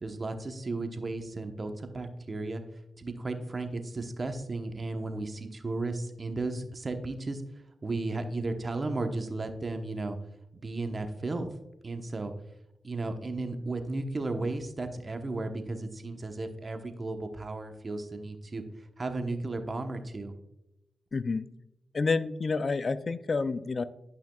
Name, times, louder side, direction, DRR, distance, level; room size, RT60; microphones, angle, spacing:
voice 1, 0.0-2.6 3.0-7.4 7.8-10.2 10.6-11.5 11.8-12.3 12.8-20.3, right 2 dB, 40° right, 7 dB, 1.0 m, -34 dB
voice 2, 21.1-21.5 21.9-23.8, left 4 dB, 50° left, 14 dB, 0.4 m, -29 dB
11.5 x 5.7 x 2.3 m, 0.89 s
cardioid pair, 55°, 0 cm